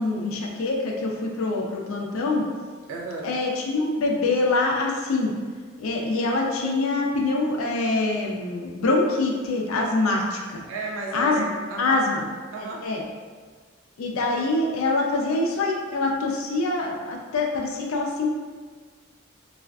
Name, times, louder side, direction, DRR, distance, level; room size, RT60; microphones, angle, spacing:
voice 1, 0.0-2.4 3.2-5.3 5.8-10.6 11.1-11.4 11.8-12.3 12.8-13.0 14.0-18.3, left 2 dB, 85° left, 0 dB, 0.4 m, -24 dB
voice 2, 2.9-3.3 10.7-12.0 12.5-12.9, right 3 dB, 85° right, -2 dB, 0.4 m, -33 dB
3.2 x 2.4 x 2.3 m, 1.5 s
head